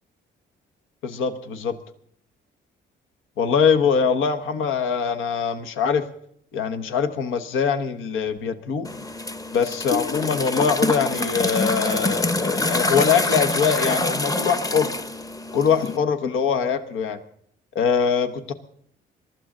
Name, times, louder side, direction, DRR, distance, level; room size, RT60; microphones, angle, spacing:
voice 1, 1.0-1.8 3.4-6.0 6.5-8.9 9.5-14.9 15.5-17.2 17.7-18.5, left 6 dB, 85° left, 9 dB, 1.2 m, -23 dB
sound 1, 8.8-16.0, left 2 dB, 20° left, 0.9 m, -25 dB
22.5 x 13.0 x 3.8 m, 0.65 s
cardioid pair, 90°, 20 cm